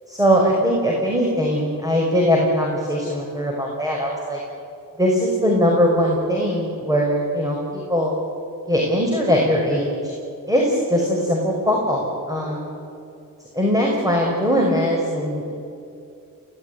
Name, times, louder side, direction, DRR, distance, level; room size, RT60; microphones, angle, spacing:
voice 1, 0.1-4.4 5.0-8.2 8.7-10.1 10.5-12.6 13.5-15.5, equal, 10° right, -1 dB, 5.7 m, -20 dB
27.5 x 18.0 x 9.8 m, 2.6 s
cardioid pair, 90°, 34 cm